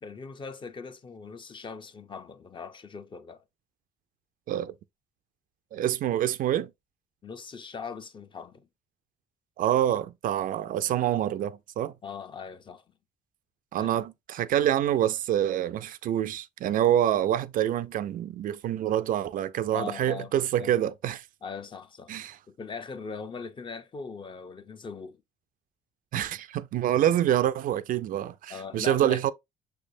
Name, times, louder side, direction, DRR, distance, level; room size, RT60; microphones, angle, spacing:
voice 1, 0.0-3.4 7.2-8.7 12.0-12.8 13.8-13.9 19.7-20.7 21.4-22.1 22.5-25.2 28.5-29.2, left 5 dB, 30° left, 0.5 m, -40 dB
voice 2, 5.7-6.7 9.6-11.9 13.7-21.2 22.1-22.4 26.1-29.3, right 11 dB, 55° right, 0.4 m, -26 dB
5.9 x 3.3 x 2.6 m
cardioid pair, 110°, 17 cm